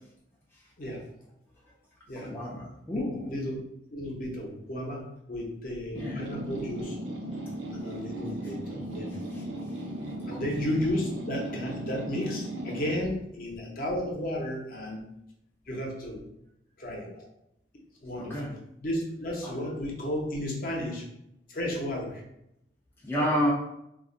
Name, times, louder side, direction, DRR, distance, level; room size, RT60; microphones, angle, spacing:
voice 1, 2.2-3.2 6.0-6.2 10.3-10.5 18.2-18.5 23.0-23.5, equal, 10° left, -6 dB, 0.3 m, -29 dB
voice 2, 2.9-3.6 3.9-7.0 7.7-9.2 10.3-15.0 15.7-16.3 16.8-17.3 18.0-21.1 21.5-22.2 23.2-23.3, left 1 dB, 50° left, -1 dB, 0.6 m, -33 dB
sound 1, 6.0-13.0, right 1 dB, 85° right, 0.5 m, -36 dB
2.4 x 2.1 x 3.7 m, 0.81 s
head